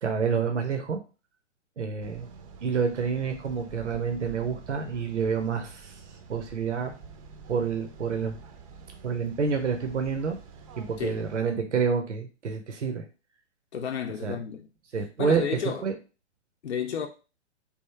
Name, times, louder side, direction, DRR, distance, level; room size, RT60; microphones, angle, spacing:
voice 1, 0.0-1.0 1.8-2.3 2.6-6.0 6.3-6.9 7.5-8.3 9.0-10.4 10.8-13.0 14.2-14.4 14.9-15.9, right 6 dB, 80° right, 0.7 m, -28 dB
sound 1, 2.0-11.4, right 5 dB, 30° right, 0.5 m, -47 dB
voice 2, 13.7-14.7 15.2-15.8 16.6-17.1, left 7 dB, 70° left, 0.6 m, -31 dB
3.5 x 2.5 x 4.3 m
figure-of-eight pair, 115°, 35 cm